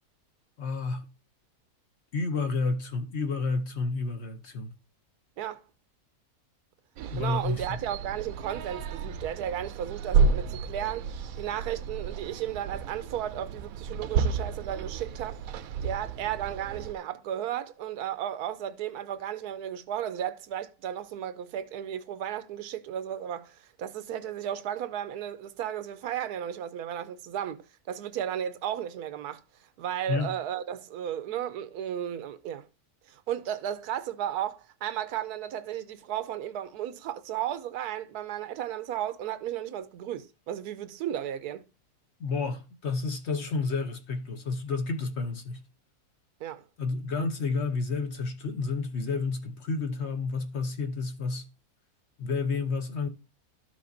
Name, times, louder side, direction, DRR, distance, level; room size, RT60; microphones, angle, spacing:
voice 1, 0.6-1.1 2.1-4.7 7.1-7.8 30.1-30.3 42.2-45.6 46.8-51.5 52.2-53.1, left 4 dB, 55° left, 0.9 m, -30 dB
sound 1, 7.0-16.9, right 5 dB, 70° right, 0.9 m, -31 dB
voice 2, 7.2-11.1 11.4-15.4 15.8-29.4 29.8-32.7 33.1-41.6 46.4-46.6, right 10 dB, 90° right, 1.2 m, -34 dB
12.5 x 5.0 x 2.6 m
omnidirectional pair, 1.6 m